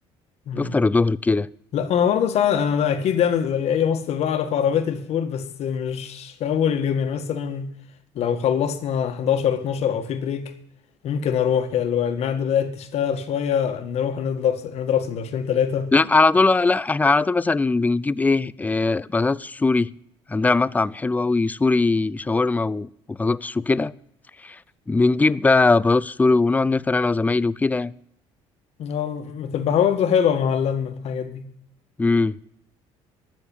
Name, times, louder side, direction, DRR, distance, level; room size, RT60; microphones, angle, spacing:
voice 1, 0.6-1.5 15.9-19.9 20.3-23.9 24.4-24.6 24.9-27.9 32.0-32.4, left 3 dB, 15° left, 0.4 m, -20 dB
voice 2, 1.7-7.7 8.2-10.5 11.0-15.9 28.8-31.5, left 8 dB, 60° left, 1.8 m, -23 dB
13.5 x 7.1 x 8.9 m
cardioid pair, 110°, 12 cm